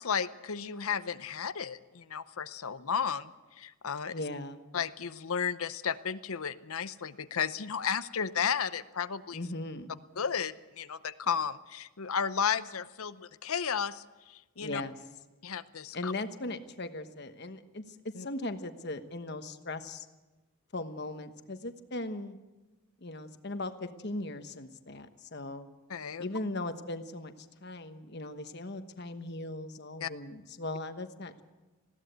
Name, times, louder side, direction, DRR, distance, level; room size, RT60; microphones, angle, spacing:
voice 1, 0.0-3.3 3.6-4.1 4.7-9.4 10.2-14.0 14.3-14.8 15.4-16.1 18.2-18.3 25.9-26.2 30.0-30.1, left 7 dB, 75° left, 13 dB, 0.7 m, -33 dB
voice 2, 4.1-4.6 9.3-9.9 14.6-15.0 15.9-20.1 20.7-22.4 23.0-25.7 26.2-31.4, left 2 dB, 50° left, 8 dB, 1.2 m, -38 dB
20.0 x 16.0 x 8.1 m, 1.2 s
head